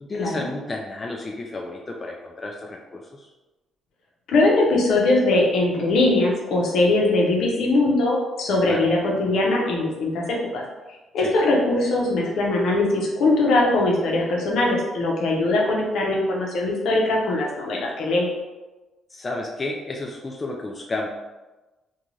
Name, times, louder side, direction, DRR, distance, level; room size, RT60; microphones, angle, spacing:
voice 1, 0.0-3.3 8.7-8.9 11.2-11.4 19.1-21.1, left 2 dB, 30° left, 0 dB, 0.3 m, -32 dB
voice 2, 4.3-10.6 11.1-18.3, left 2 dB, 75° left, -2 dB, 0.7 m, -21 dB
2.5 x 2.3 x 3.0 m, 1.1 s
cardioid pair, 90°, 0 cm